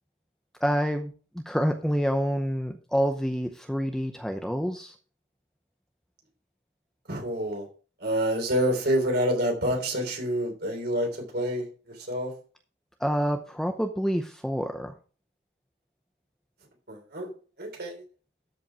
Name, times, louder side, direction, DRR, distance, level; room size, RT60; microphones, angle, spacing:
voice 1, 0.6-4.9 13.0-14.9, equal, 5° left, 5 dB, 0.7 m, -27 dB
voice 2, 7.1-7.7 8.0-12.3 16.9-17.3 17.6-18.0, equal, 55° right, 2 dB, 3.4 m, -28 dB
13.0 x 5.3 x 4.6 m, 0.38 s
head